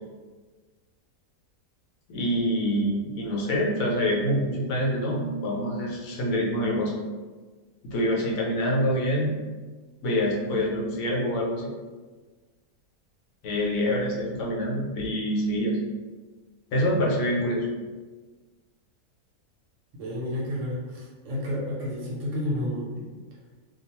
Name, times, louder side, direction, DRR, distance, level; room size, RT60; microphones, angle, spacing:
voice 1, 2.1-6.9 7.8-9.4 10.0-11.7 13.4-15.8 16.7-17.7, equal, 75° left, -3 dB, 1.0 m, -26 dB
voice 2, 20.0-23.1, left 1 dB, 65° right, -4 dB, 0.9 m, -31 dB
2.3 x 2.2 x 2.8 m, 1.4 s
omnidirectional pair, 1.5 m